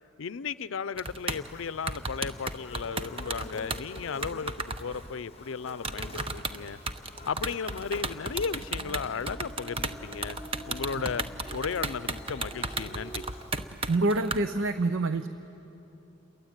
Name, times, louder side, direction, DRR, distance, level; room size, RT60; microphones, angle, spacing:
voice 1, 0.2-4.5 4.8-6.8 7.2-10.4 10.7-11.2 11.5-13.2, left 6 dB, 80° left, 17 dB, 0.5 m, -35 dB
sound 1, 1.0-1.5 1.9-5.1 5.8-14.4, right 3 dB, 30° right, 0.9 m, -34 dB
Buzz, 1.3-13.6, left 3 dB, 30° left, 0.8 m, -49 dB
sound 2, 8.1-13.3, right 1 dB, ahead, 2.0 m, -46 dB
voice 2, 13.9-15.3, right 2 dB, 80° right, 10 dB, 0.8 m, -26 dB
29.0 x 22.5 x 9.0 m, 3.0 s
head